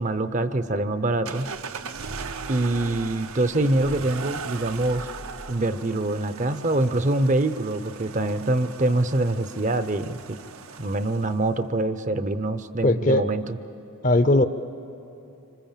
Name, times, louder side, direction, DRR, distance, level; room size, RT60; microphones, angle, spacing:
voice 1, 0.0-1.5 2.5-5.1 5.5-10.4 10.8-13.6, right 2 dB, 35° right, 11 dB, 0.6 m, -25 dB
sound 1, 1.3-11.5, right 5 dB, 80° right, 0.8 m, -38 dB
voice 2, 12.8-13.2 14.0-14.5, left 1 dB, 35° left, 12 dB, 0.7 m, -18 dB
26.5 x 25.5 x 7.4 m, 2.9 s
head